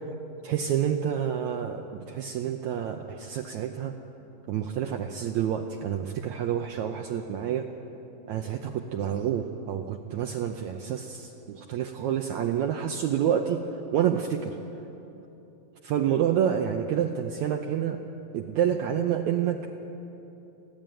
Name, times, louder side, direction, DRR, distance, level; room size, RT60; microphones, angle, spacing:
voice 1, 0.4-4.0 4.5-7.7 8.3-13.7 13.9-14.6 15.8-18.0 18.3-19.8, right 9 dB, 75° right, 4 dB, 1.8 m, -28 dB
29.0 x 11.0 x 9.0 m, 2.9 s
omnidirectional pair, 4.0 m